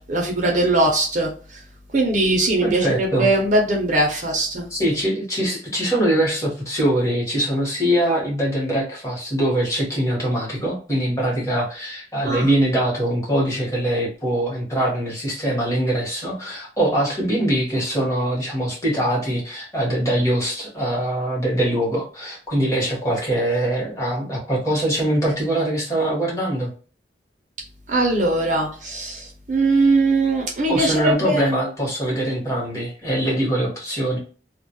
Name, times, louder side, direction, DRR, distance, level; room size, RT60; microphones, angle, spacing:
voice 1, 0.1-1.3 1.9-4.6 12.2-12.5 27.9-31.5, right 2 dB, 45° right, 0 dB, 0.5 m, -20 dB
voice 2, 2.6-3.3 4.7-26.7 30.7-34.2, right 1 dB, 15° left, -5 dB, 0.9 m, -23 dB
2.2 x 2.0 x 2.7 m, 0.39 s
head